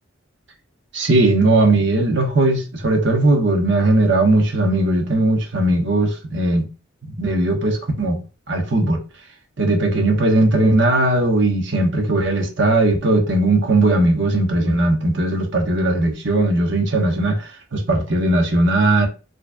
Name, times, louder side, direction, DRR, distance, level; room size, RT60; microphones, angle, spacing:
voice 1, 0.9-6.7 7.2-8.2 8.5-9.0 9.6-19.1, right 2 dB, 65° right, 1.1 m, -18 dB
4.7 x 3.2 x 2.4 m
head